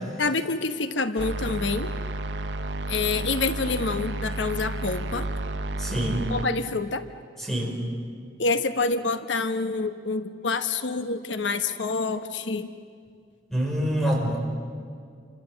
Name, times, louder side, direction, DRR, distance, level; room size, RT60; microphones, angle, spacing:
voice 1, 0.2-1.9 2.9-5.3 6.3-7.0 8.4-12.7, left 3 dB, 85° left, 9 dB, 1.1 m, -27 dB
sound 1, 1.2-6.5, right 1 dB, 70° right, 1.1 m, -31 dB
voice 2, 5.8-6.2 7.5-7.7 13.5-14.4, equal, ahead, -1 dB, 5.5 m, -25 dB
28.5 x 26.0 x 7.8 m, 2.2 s
head